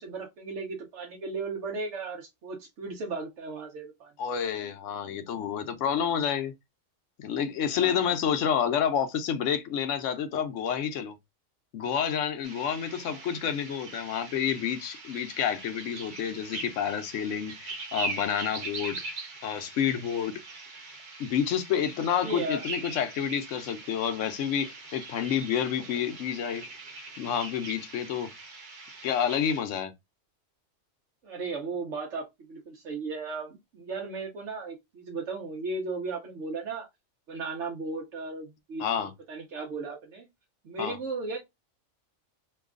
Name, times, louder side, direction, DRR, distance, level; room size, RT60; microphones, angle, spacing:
voice 1, 0.0-4.1 7.7-8.4 13.0-13.2 22.1-22.7 31.2-36.9 37.3-40.3 40.6-41.4, right 3 dB, 75° right, 1.1 m, -36 dB
voice 2, 4.2-6.5 7.2-11.2 11.7-19.0 19.4-20.3 21.2-26.6 27.2-28.3 29.0-29.9 38.8-39.1 40.8-41.0, left 8 dB, 80° left, 1.0 m, -29 dB
sound 1, 12.4-29.6, right 3 dB, 45° right, 0.9 m, -41 dB
3.1 x 2.3 x 3.6 m
omnidirectional pair, 1.3 m